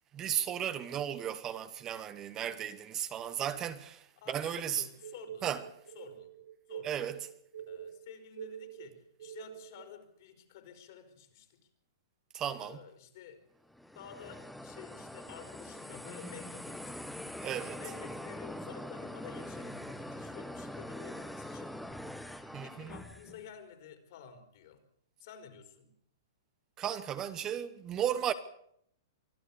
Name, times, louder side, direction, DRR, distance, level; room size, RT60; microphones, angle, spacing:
voice 1, 0.1-4.8 5.4-5.6 6.8-7.2 12.3-12.8 17.4-17.8 22.5-22.9 26.8-28.3, right 10 dB, 25° right, 1.1 m, -35 dB
voice 2, 4.2-5.5 5.9-6.3 6.7-7.0 7.7-11.6 12.6-13.4 13.9-17.1 17.8-21.8 22.6-24.8 25.2-25.9, left 8 dB, 55° left, 4.5 m, -51 dB
sound 1, 5.0-9.9, right 10 dB, 85° right, 3.6 m, -46 dB
sound 2, 13.7-23.5, left 1 dB, ahead, 1.4 m, -43 dB
24.5 x 12.5 x 8.6 m
hypercardioid pair, 140°, 2 cm